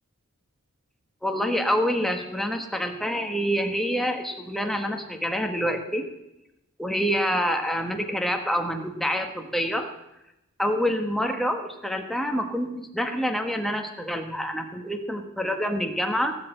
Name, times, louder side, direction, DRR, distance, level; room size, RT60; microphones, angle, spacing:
voice 1, 1.2-6.1 6.8-9.9 10.6-16.3, equal, ahead, 4 dB, 1.3 m, -27 dB
17.0 x 6.6 x 8.1 m, 0.90 s
head